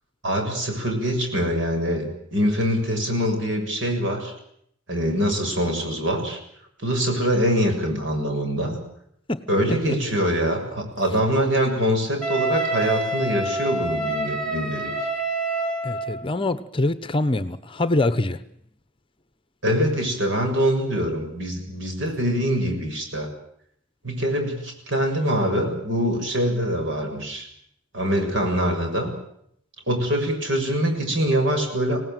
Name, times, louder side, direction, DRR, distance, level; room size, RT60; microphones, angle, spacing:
voice 1, 0.2-4.3 4.9-6.4 6.8-8.8 9.5-14.9 19.6-23.3 24.0-27.5 27.9-29.1 29.9-32.0, equal, 65° right, 7.0 m, -24 dB
Wind instrument woodwind instrument, 12.2-16.1, right 2 dB, 5° left, 4.9 m, -27 dB
voice 2, 15.8-18.4, left 2 dB, 25° left, 0.9 m, -24 dB
25.5 x 18.5 x 9.2 m
head